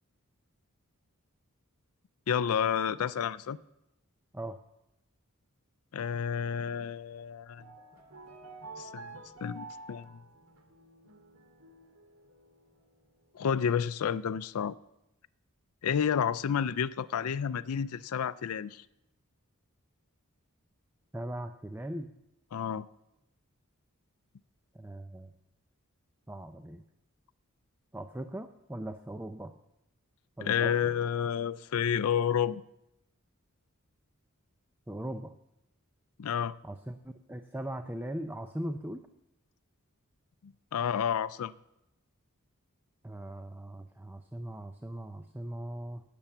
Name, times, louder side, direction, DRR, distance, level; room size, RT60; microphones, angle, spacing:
voice 1, 2.3-3.6 5.9-7.6 8.8-9.1 9.4-10.2 13.3-14.8 15.8-18.8 22.5-22.9 30.4-32.6 36.2-36.5 40.4-41.5, left 8 dB, 80° left, 0.4 m, -30 dB
sound 1, 7.4-13.3, right 3 dB, 80° right, 2.2 m, -50 dB
voice 2, 21.1-22.1 24.7-25.3 26.3-26.8 27.9-29.5 30.4-30.9 34.9-35.3 36.6-39.0 43.0-46.0, right 1 dB, 10° right, 0.5 m, -39 dB
17.5 x 6.9 x 7.2 m
head